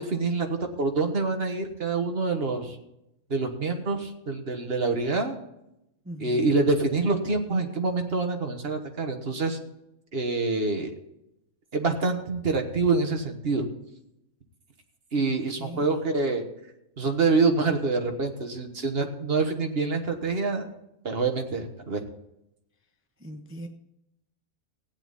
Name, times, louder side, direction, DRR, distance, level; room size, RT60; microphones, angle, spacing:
voice 1, 0.0-2.8 3.3-5.4 6.2-9.6 10.1-10.9 11.7-13.7 15.1-16.4 17.0-20.6 21.0-22.0, right 3 dB, 45° right, 1.6 m, -26 dB
voice 2, 6.1-6.4 15.2-15.9 23.2-23.7, right 1 dB, 10° right, 0.6 m, -41 dB
15.5 x 9.4 x 4.1 m
omnidirectional pair, 1.5 m